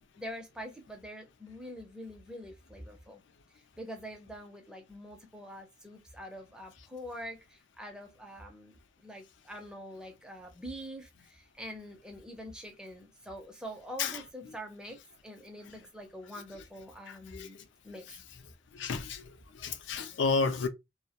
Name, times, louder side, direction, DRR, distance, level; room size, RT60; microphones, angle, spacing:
voice 1, 0.2-3.2 3.8-17.6 17.8-18.0, equal, 5° right, 0.5 m, -45 dB
voice 2, 14.0-14.5 17.1-17.6 18.1-18.2 18.7-20.7, left 4 dB, 75° left, 0.4 m, -33 dB
2.2 x 2.1 x 2.7 m
head